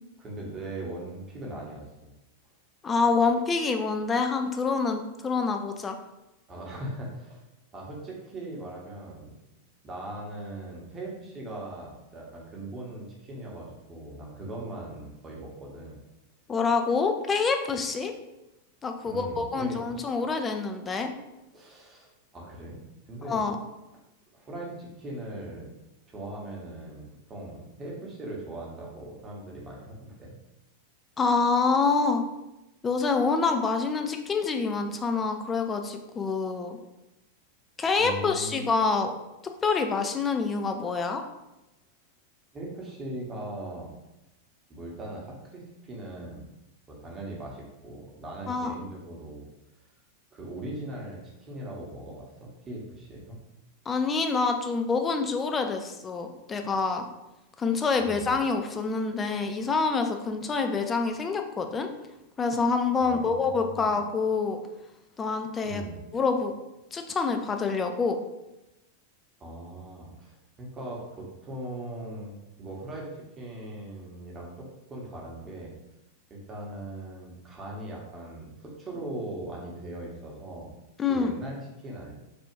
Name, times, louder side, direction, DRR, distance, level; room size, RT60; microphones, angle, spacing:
voice 1, 0.2-2.1 6.5-7.4 7.7-9.3 9.8-16.0 19.1-20.1 21.5-22.8 23.1-23.4 23.9-24.0 24.3-25.7 26.1-30.4 38.0-38.7 42.5-43.9 44.7-46.5 46.9-49.5 50.3-53.4 58.0-58.3 63.0-63.9 65.6-66.0 69.4-75.7 76.3-80.7 81.1-82.1, right 1 dB, 25° right, -2 dB, 0.9 m, -40 dB
voice 2, 2.8-6.0 16.5-18.1 18.8-21.1 23.3-23.6 31.2-32.3 32.8-36.8 37.8-39.1 39.6-41.2 48.5-48.7 53.9-57.1 57.6-61.9 62.4-64.6 65.2-65.8 66.1-66.5 66.9-68.2 81.0-81.3, left 4 dB, 20° left, 6 dB, 0.3 m, -26 dB
3.4 x 2.4 x 3.0 m, 0.95 s
figure-of-eight pair, 90°, 0 cm